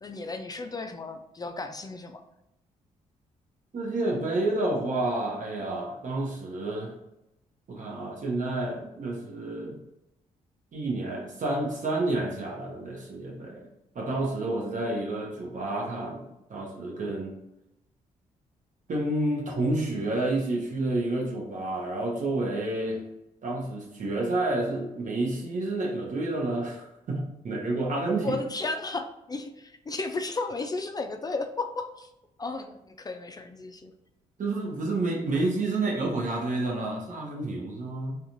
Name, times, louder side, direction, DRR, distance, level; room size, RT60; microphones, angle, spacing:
voice 1, 0.0-2.2 28.2-32.1 32.4-33.9, left 3 dB, 25° left, 6 dB, 0.3 m, -34 dB
voice 2, 3.7-7.0 7.7-9.8 10.7-13.7 13.9-17.3 18.9-23.0 23.4-28.4 34.4-38.2, right 2 dB, 50° right, -1 dB, 0.8 m, -29 dB
2.4 x 2.3 x 2.9 m, 0.89 s
hypercardioid pair, 45°, 17 cm